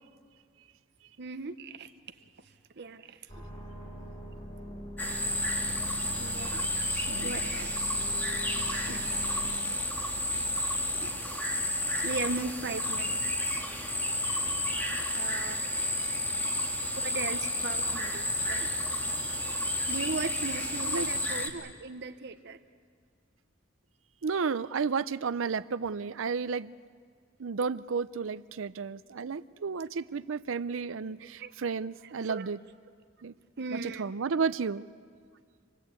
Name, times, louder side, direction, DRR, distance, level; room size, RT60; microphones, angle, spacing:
voice 1, 1.2-1.9 2.8-3.2 6.2-6.7 7.2-7.7 8.9-9.1 11.0-11.2 12.0-13.6 15.1-15.6 17.0-18.7 19.9-22.6 31.4-31.5 32.3-32.5 33.6-34.0, right 4 dB, 60° right, 9 dB, 0.9 m, -37 dB
sound 1, 3.3-9.6, equal, 30° left, 5.4 m, -43 dB
sound 2, 5.0-21.5, left 1 dB, 10° left, 2.0 m, -31 dB
voice 2, 6.9-7.5 19.3-19.4 20.8-21.1 24.2-26.7 27.4-32.6 33.2-33.3 33.7-34.8, right 5 dB, 85° right, 15 dB, 0.5 m, -32 dB
27.0 x 20.5 x 8.3 m, 2.1 s
head